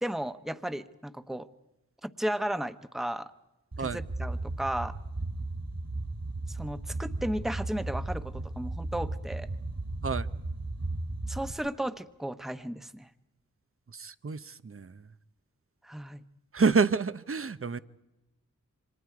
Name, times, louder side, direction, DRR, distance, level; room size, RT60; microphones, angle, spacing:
voice 1, 0.0-1.5 2.0-3.3 3.8-4.9 6.5-9.5 11.3-13.1 15.8-16.2, right 1 dB, ahead, 10 dB, 1.0 m, -34 dB
sound 1, 3.7-11.5, right 2 dB, 60° right, 5.2 m, -35 dB
voice 2, 13.9-14.9 16.5-17.8, right 4 dB, 45° right, 15 dB, 0.8 m, -28 dB
29.0 x 25.5 x 4.8 m, 0.99 s
wide cardioid pair, 40°, 31 cm